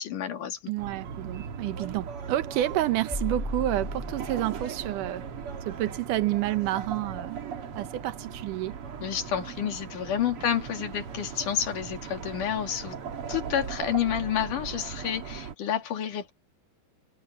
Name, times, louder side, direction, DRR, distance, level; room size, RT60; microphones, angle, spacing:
voice 1, 0.0-0.6 9.0-13.0 13.3-16.3, left 9 dB, 80° left, 4.1 m, -29 dB
voice 2, 0.7-5.2 5.7-7.4 7.8-8.8, right 14 dB, 80° right, 2.6 m, -29 dB
sound 1, 0.8-15.6, right 6 dB, 50° right, 2.3 m, -38 dB
sound 2, 3.1-4.9, left 1 dB, 15° left, 1.1 m, -35 dB
omnidirectional pair, 3.6 m